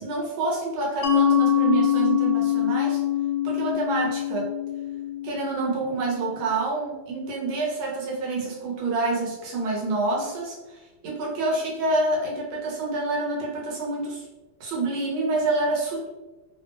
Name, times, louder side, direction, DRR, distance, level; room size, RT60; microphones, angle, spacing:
voice 1, 0.0-3.0 3.4-4.5 5.2-14.3 14.6-16.1, right 2 dB, 80° right, -3 dB, 1.6 m, -27 dB
Mallet percussion, 1.0-6.4, left 10 dB, 80° left, 1.3 m, -24 dB
3.6 x 2.1 x 3.1 m, 1.2 s
omnidirectional pair, 2.2 m